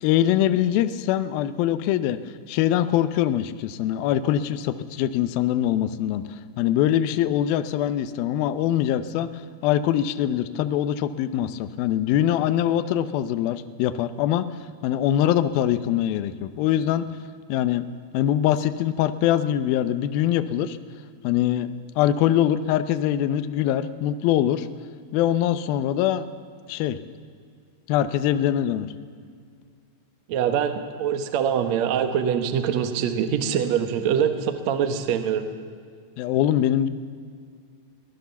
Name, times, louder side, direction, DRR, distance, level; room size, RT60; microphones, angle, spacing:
voice 1, 0.0-2.2 2.5-6.2 6.6-9.3 9.6-14.5 14.8-17.1 17.5-17.9 18.1-20.8 21.2-21.7 22.0-24.7 25.1-26.3 26.7-27.0 27.9-28.9 36.2-36.9, left 11 dB, 80° left, 11 dB, 2.1 m, -23 dB
voice 2, 30.3-35.5, right 8 dB, 75° right, 8 dB, 1.6 m, -24 dB
23.0 x 17.5 x 7.0 m, 2.1 s
omnidirectional pair, 5.2 m